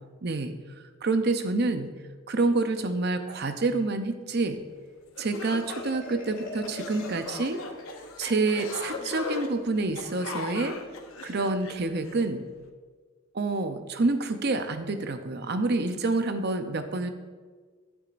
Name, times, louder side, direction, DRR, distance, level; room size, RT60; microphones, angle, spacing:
voice 1, 0.2-0.5 1.0-1.9 2.3-4.6 5.2-7.6 8.2-10.8 11.2-12.4 13.3-17.1, right 3 dB, 50° right, 8 dB, 0.6 m, -27 dB
sound 1, 4.8-4.9 5.2-12.3, left 4 dB, 85° left, 0.9 m, -39 dB
Marimba xylophone, 5.7-8.4, left 1 dB, 40° left, 1.2 m, -43 dB
12.5 x 7.3 x 2.5 m, 1.5 s
head